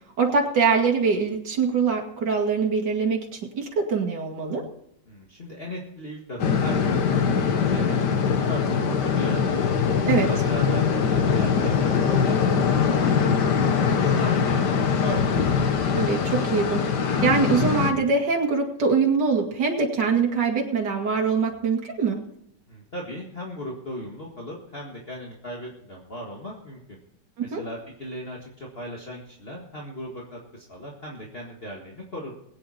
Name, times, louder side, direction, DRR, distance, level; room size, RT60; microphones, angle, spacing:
voice 1, 0.2-4.6 10.0-10.3 15.9-22.2 27.5-27.6, right 5 dB, 70° right, 0 dB, 2.6 m, -23 dB
voice 2, 5.1-7.1 7.3-9.6 10.1-15.5 22.7-27.0 27.4-32.3, equal, 35° left, -2 dB, 2.0 m, -37 dB
sound 1, 6.4-17.9, left 6 dB, 70° left, 1.8 m, -22 dB
21.5 x 9.1 x 4.3 m, 0.74 s
omnidirectional pair, 2.0 m